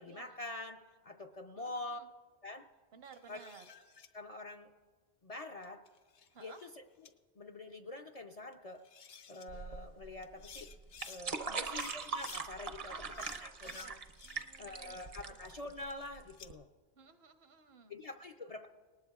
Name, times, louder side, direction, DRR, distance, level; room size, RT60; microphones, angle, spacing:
voice 1, 0.0-2.0 2.4-2.7 3.3-3.4 3.7-3.8 4.1-4.7 5.2-5.8 6.4-6.7 7.0-8.8 9.3-10.7 11.1-14.0 14.6-16.7 17.9-18.7, left 2 dB, 50° left, 4 dB, 0.5 m, -46 dB
voice 2, 1.6-2.1 2.9-3.6 6.3-6.6 11.4-11.8 12.9-13.9 14.2-15.4 16.9-18.0, right 5 dB, 70° right, 8 dB, 1.1 m, -57 dB
sound 1, 3.0-4.1 5.6-6.7 7.0-7.1 8.5-8.6 8.8-9.5 10.2-11.2 11.7-12.4 13.1-14.6 15.0-16.5, left 7 dB, 65° left, 0.9 m, -54 dB
sound 2, 9.5-16.5, right 4 dB, 40° right, 0.6 m, -42 dB
19.0 x 18.5 x 2.3 m, 1.5 s
omnidirectional pair, 1.1 m